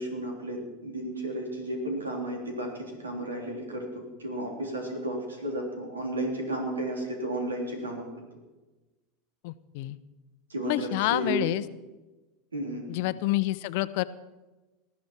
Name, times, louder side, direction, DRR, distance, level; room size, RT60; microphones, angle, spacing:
voice 1, 0.0-8.1 10.5-11.4 12.5-12.9, right 1 dB, 90° right, 1 dB, 3.6 m, -33 dB
voice 2, 9.4-10.0 10.6-11.6 12.9-14.0, left 17 dB, 60° left, 15 dB, 0.7 m, -28 dB
19.5 x 13.5 x 4.6 m, 1.1 s
hypercardioid pair, 85°, 0 cm